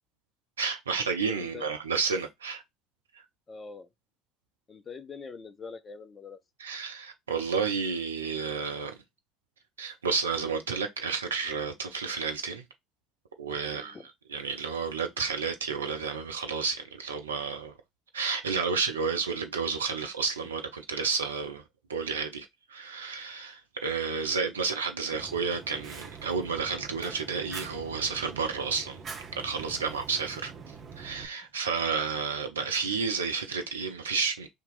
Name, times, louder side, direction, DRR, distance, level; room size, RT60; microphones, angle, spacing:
voice 1, 0.6-2.6 6.6-9.0 9.8-12.6 13.4-14.0 14.3-17.7 18.1-21.6 21.9-29.0 29.3-30.5 31.0-34.5, right 5 dB, 85° right, 0.4 m, -31 dB
voice 2, 3.5-3.9 4.7-6.4 13.6-14.1 29.8-29.9, left 5 dB, 35° left, 0.6 m, -44 dB
Fire, 25.1-31.3, right 5 dB, 40° right, 1.0 m, -44 dB
2.8 x 2.6 x 3.6 m
hypercardioid pair, 60°, 0 cm